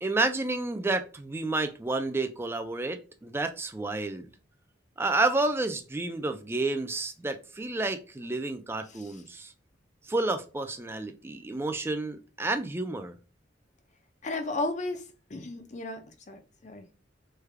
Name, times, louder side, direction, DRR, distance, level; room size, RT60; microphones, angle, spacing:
voice 1, 0.0-4.3 5.0-9.5 10.1-13.1, right 2 dB, 15° right, 0.3 m, -30 dB
voice 2, 8.9-9.2 14.2-15.0 15.3-16.0 16.3-16.8, left 2 dB, 40° left, 0.5 m, -34 dB
3.3 x 2.3 x 3.3 m
head